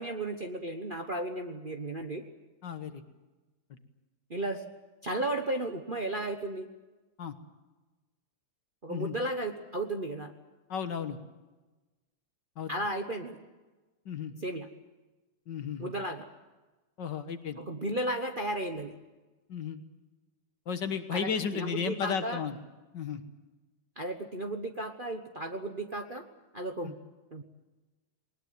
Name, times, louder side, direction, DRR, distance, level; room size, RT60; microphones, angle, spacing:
voice 1, 0.0-2.3 4.3-4.6 5.0-6.7 8.8-10.3 12.7-13.4 14.4-14.7 15.8-16.3 17.6-18.9 21.1-22.4 24.0-26.2 26.5-27.0 27.3-27.4, right 1 dB, 35° right, 4 dB, 1.0 m, -34 dB
voice 2, 2.6-3.0 7.2-7.3 8.9-9.2 10.7-11.2 12.6-12.7 14.1-14.3 15.5-15.9 17.0-17.6 19.5-19.8 20.7-22.6 22.9-23.2 26.8-26.9, left 7 dB, 60° left, 9 dB, 1.9 m, -34 dB
21.0 x 20.0 x 9.4 m, 1.2 s
omnidirectional pair, 2.3 m